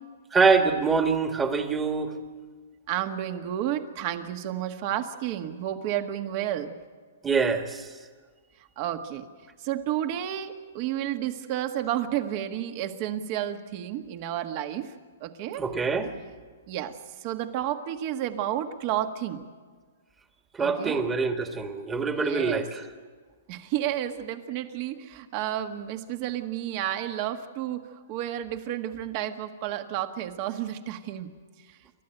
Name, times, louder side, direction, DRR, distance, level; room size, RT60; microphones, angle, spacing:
voice 1, 0.3-2.2 7.2-7.8 15.6-16.1 20.6-22.8, right 4 dB, 15° right, 6 dB, 1.7 m, -24 dB
voice 2, 2.9-6.8 8.8-9.3 9.6-14.9 15.2-15.6 16.7-19.4 20.6-21.0 22.0-22.7 23.5-31.3 31.7-31.8, right 11 dB, 40° right, 7 dB, 1.6 m, -31 dB
28.5 x 13.0 x 9.1 m, 1.5 s
hypercardioid pair, 145°, 0 cm